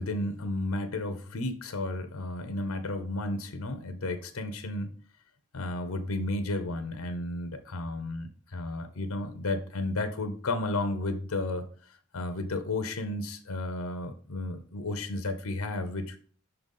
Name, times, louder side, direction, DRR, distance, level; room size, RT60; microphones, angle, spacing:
voice 1, 0.0-4.9 5.5-11.7 12.1-16.2, left 2 dB, 90° left, 8 dB, 0.8 m, -33 dB
5.7 x 4.0 x 5.3 m, 0.44 s
head